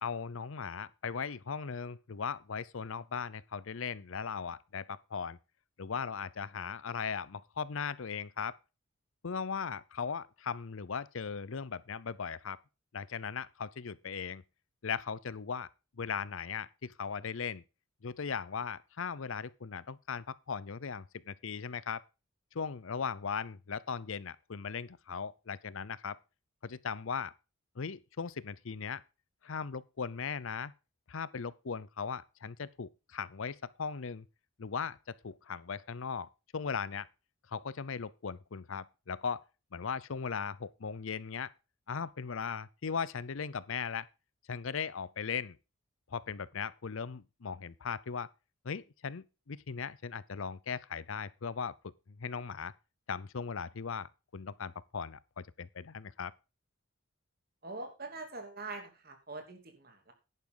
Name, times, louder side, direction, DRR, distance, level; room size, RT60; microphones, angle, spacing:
voice 1, 0.0-5.4 5.8-8.6 9.2-12.6 12.9-14.4 14.8-15.7 16.0-17.6 18.0-22.0 22.5-26.2 26.6-27.3 27.8-29.0 29.4-30.7 31.1-34.2 34.6-37.1 37.5-39.4 39.7-41.5 41.9-44.1 44.5-45.6 46.1-48.3 48.6-51.7 52.2-52.7 53.1-56.3, left 6 dB, 70° left, 0.6 m, -38 dB
voice 2, 57.6-60.1, right 3 dB, 45° right, 2.9 m, -44 dB
11.0 x 9.7 x 3.9 m
head